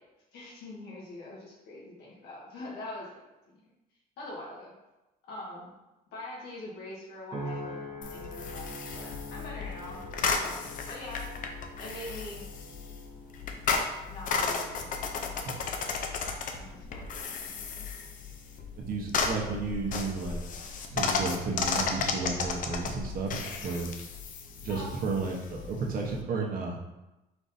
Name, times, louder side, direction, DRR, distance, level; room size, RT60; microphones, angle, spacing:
voice 1, 0.3-3.2 3.5-3.6 4.2-4.7 5.3-5.7 6.1-11.3 11.8-12.5 14.1-15.4 16.6-17.9 24.7-24.9, left 1 dB, 85° left, -5 dB, 1.4 m, -44 dB
sound 1, 7.3-21.8 22.3-22.7, equal, 25° right, 1.0 m, -46 dB
sound 2, 8.0-26.2, left 5 dB, 50° left, 0.5 m, -34 dB
voice 2, 18.8-20.4 20.9-23.9 24.6-26.8, right 4 dB, 55° right, -1 dB, 1.0 m, -33 dB
4.6 x 3.9 x 2.7 m, 1.0 s
cardioid pair, 110°, 17 cm